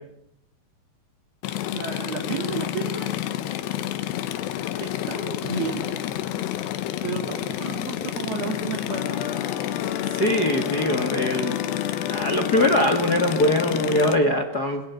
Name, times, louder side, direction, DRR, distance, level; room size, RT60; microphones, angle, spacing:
sound 1, 1.4-14.2, left 12 dB, 80° left, 3.4 m, -30 dB
voice 1, 1.7-3.1 4.8-5.9 7.0-9.3, right 6 dB, 65° right, 2 dB, 4.3 m, -32 dB
sound 2, 8.9-14.1, left 9 dB, 65° left, 3.5 m, -31 dB
voice 2, 10.1-11.6 12.1-14.8, left 1 dB, 40° left, 6 dB, 1.4 m, -22 dB
29.0 x 22.0 x 8.4 m, 0.76 s
omnidirectional pair, 4.8 m